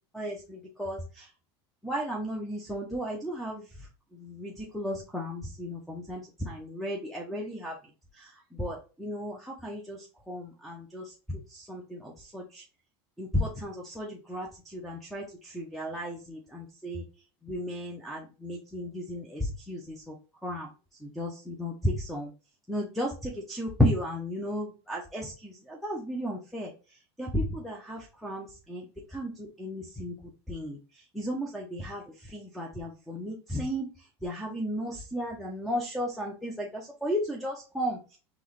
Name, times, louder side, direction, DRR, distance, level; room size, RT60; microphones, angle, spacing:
voice 1, 0.1-1.3 1.8-3.6 4.1-7.8 8.1-12.6 13.2-17.0 17.4-20.1 20.4-20.7 21.0-22.3 22.7-26.7 27.2-30.1 30.5-30.8 31.1-33.9 34.2-38.0, equal, ahead, 0 dB, 0.9 m, -34 dB
3.7 x 3.6 x 3.2 m, 0.34 s
supercardioid pair, 110°, 14 cm